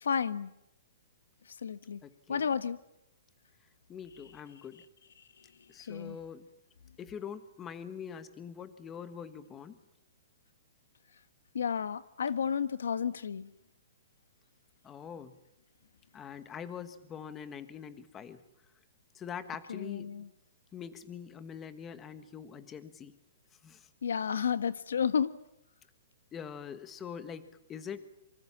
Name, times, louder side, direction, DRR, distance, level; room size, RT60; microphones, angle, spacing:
voice 1, 0.0-0.5 1.6-2.0 2.3-2.8 5.9-6.2 11.5-13.5 19.7-20.3 24.0-25.3, left 7 dB, 85° left, 13 dB, 1.4 m, -31 dB
voice 2, 2.0-2.4 3.9-4.8 5.7-6.5 7.0-9.8 14.8-15.3 16.1-18.4 19.1-20.1 20.7-23.1 23.6-23.9 26.3-28.1, left 7 dB, 15° left, 11 dB, 1.5 m, -44 dB
26.0 x 24.5 x 7.4 m, 0.83 s
hypercardioid pair, 160°, 0 cm